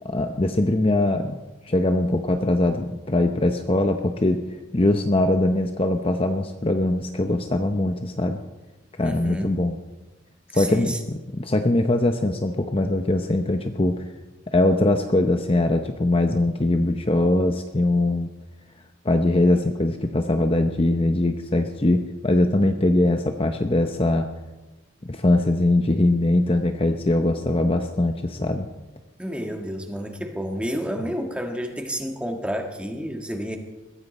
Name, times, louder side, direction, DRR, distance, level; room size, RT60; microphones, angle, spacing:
voice 1, 0.0-1.4 1.6-4.4 4.7-8.4 9.0-9.8 10.5-10.9 11.3-14.0 14.5-18.3 19.0-24.3 25.1-28.7, left 1 dB, 25° left, 6 dB, 0.7 m, -21 dB
voice 2, 9.0-9.6 10.5-11.0 29.2-33.6, equal, 5° right, 3 dB, 1.6 m, -30 dB
21.5 x 15.5 x 4.2 m, 1.1 s
head